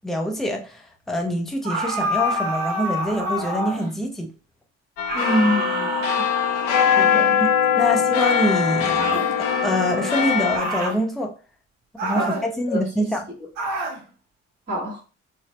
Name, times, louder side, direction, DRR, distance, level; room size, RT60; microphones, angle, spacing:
voice 1, 0.0-4.3 6.2-6.3 7.4-7.5 7.7-11.3 12.0-13.3, equal, ahead, 0.7 m, -25 dB
sound 1, 1.6-4.0 5.1-7.3 8.9-9.3 10.5-11.0 12.0-12.5 13.6-14.0, equal, 55° right, 1.0 m, -27 dB
sound 2, 5.0-10.6, left 7 dB, 65° left, 0.7 m, -21 dB
voice 2, 5.1-5.9 6.9-7.4 7.8-8.0 12.1-12.4 12.7-12.8 14.7-15.0, left 1 dB, 30° right, 1.5 m, -25 dB
3.9 x 2.0 x 3.0 m
figure-of-eight pair, 45°, 36 cm